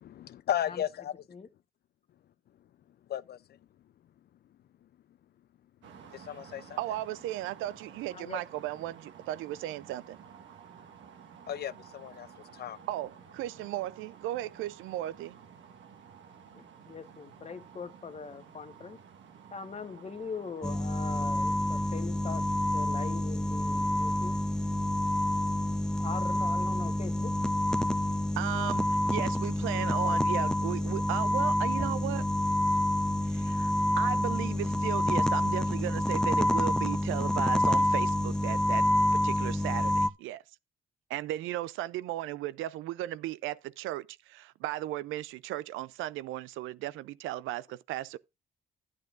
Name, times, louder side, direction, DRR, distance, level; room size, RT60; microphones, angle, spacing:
voice 1, 0.0-1.2 3.1-3.4 6.1-6.8 11.5-12.3 12.5-12.8, left 10 dB, 55° left, 0.4 m, -34 dB
sound 1, 5.8-20.7, right 7 dB, 70° right, 1.5 m, -52 dB
voice 2, 6.8-10.2 12.9-15.4 28.4-32.3 33.2-38.9 39.1-40.4 41.1-48.2, right 14 dB, 90° right, 0.4 m, -36 dB
voice 3, 16.5-19.0 19.5-22.5 22.7-24.4 26.0-27.3 30.0-30.5, left 5 dB, 35° left, 1.1 m, -42 dB
sound 2, 20.6-40.1, left 1 dB, 5° left, 0.6 m, -28 dB
12.0 x 8.5 x 2.4 m
cardioid pair, 90°, 20 cm